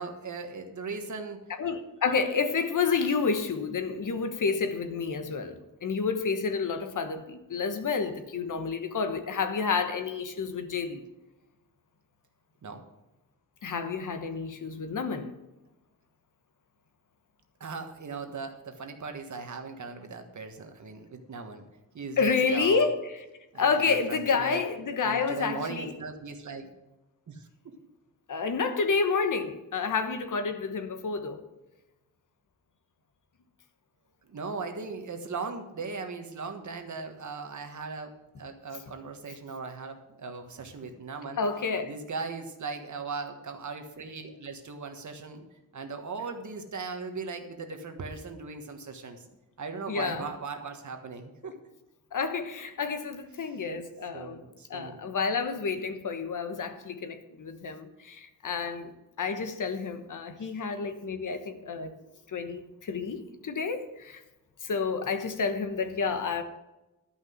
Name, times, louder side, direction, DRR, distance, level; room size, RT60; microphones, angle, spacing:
voice 1, 0.0-1.5 12.6-12.8 17.6-21.6 21.9-22.9 23.5-24.6 25.0-26.7 27.3-27.8 34.3-41.4 41.8-45.4 45.7-49.3 49.6-51.6 54.1-55.1 60.4-60.5 62.0-62.2, right 4 dB, 55° right, 6 dB, 1.5 m, -38 dB
voice 2, 1.6-11.0 13.6-15.3 22.2-23.1 23.6-25.9 28.3-31.4 41.4-41.9 49.9-50.3 52.1-54.4 54.7-58.9 59.2-61.9 62.3-64.2 64.6-66.4, left 5 dB, 65° left, 8 dB, 1.2 m, -29 dB
12.0 x 5.7 x 7.9 m, 1.0 s
wide cardioid pair, 130°, 34 cm